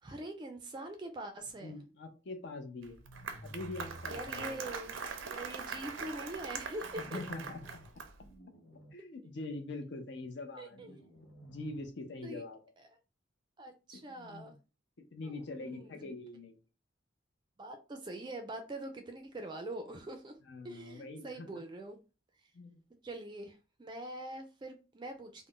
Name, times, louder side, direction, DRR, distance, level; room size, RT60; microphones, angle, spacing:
voice 1, 0.0-1.8 4.1-5.0 5.2-7.2 10.6-11.2 12.2-12.4 12.8-12.9 13.6-14.6 15.2-16.1 17.6-20.3 20.6-22.0 23.0-25.5, right 1 dB, 25° right, 0.4 m, -44 dB
voice 2, 1.6-3.0 3.4-4.7 7.0-7.6 8.9-11.0 11.4-12.6 13.9-14.5 15.1-16.6 20.4-21.6 22.5-22.8, left 2 dB, 60° left, 0.5 m, -44 dB
Applause, 2.8-8.3, right 5 dB, 90° right, 0.5 m, -42 dB
sound 1, 3.0-4.4 6.8-7.9 8.2-8.9 10.7-11.9, right 1 dB, 80° left, 1.2 m, -53 dB
2.4 x 2.1 x 3.6 m
head